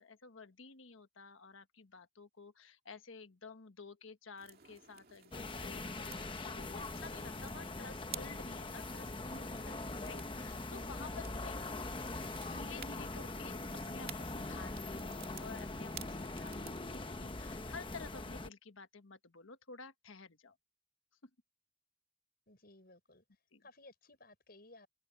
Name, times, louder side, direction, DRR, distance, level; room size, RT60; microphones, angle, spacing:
voice 1, 0.0-20.5 21.2-21.3 23.5-23.6, left 4 dB, 75° left, 1.3 m, -52 dB
sound 1, 4.4-17.2, right 10 dB, 50° right, 2.4 m, -54 dB
sound 2, 5.3-18.5, left 2 dB, 25° left, 1.0 m, -42 dB
voice 2, 22.5-23.2 23.6-24.9, left 2 dB, 50° left, 6.9 m, -59 dB
head